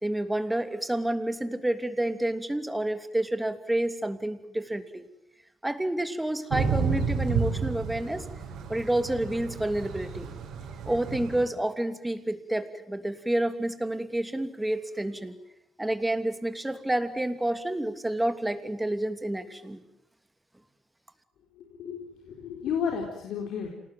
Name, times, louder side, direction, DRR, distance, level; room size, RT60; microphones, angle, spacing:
voice 1, 0.0-5.1 5.6-8.3 8.7-10.3 10.9-15.3 15.8-19.8, right 1 dB, 10° right, 9 dB, 2.9 m, -29 dB
Thunder / Rain, 6.5-11.4, right 5 dB, 80° right, 5.5 m, -31 dB
voice 2, 21.6-23.7, left 7 dB, 80° left, 2 dB, 4.3 m, -32 dB
28.0 x 19.0 x 9.2 m, 0.84 s
cardioid pair, 90°, 0 cm